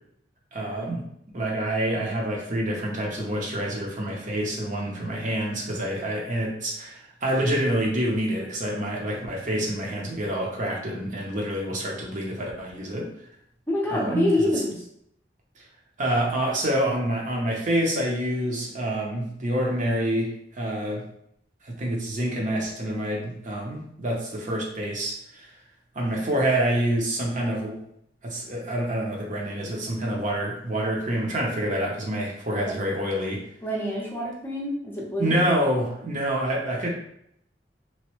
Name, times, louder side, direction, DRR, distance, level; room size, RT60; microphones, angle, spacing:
voice 1, 0.5-1.0 1.3-13.1 13.9-14.3 15.6-15.7 16.0-21.0 21.6-25.5 25.9-27.8 28.2-33.4 35.2-36.9, right 1 dB, 45° right, -2 dB, 0.8 m, -27 dB
voice 2, 13.7-14.8 33.6-35.4, left 1 dB, 15° left, -4 dB, 0.6 m, -26 dB
3.0 x 2.2 x 3.0 m, 0.73 s
head